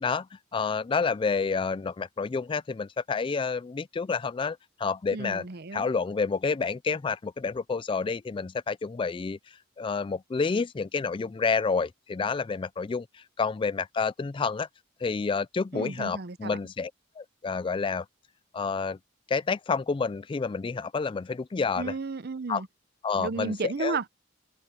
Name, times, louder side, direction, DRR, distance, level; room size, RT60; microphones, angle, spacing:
voice 1, 0.0-5.5 5.7-9.4 9.8-14.7 15.0-16.9 17.2-18.1 18.5-19.0 19.3-21.9 22.5-22.6 23.0-24.0, left 5 dB, 25° left, 0.3 m, -29 dB
voice 2, 5.1-5.9 15.7-16.6 21.8-22.7 23.2-24.1, right 4 dB, 55° right, 0.7 m, -33 dB
open air
head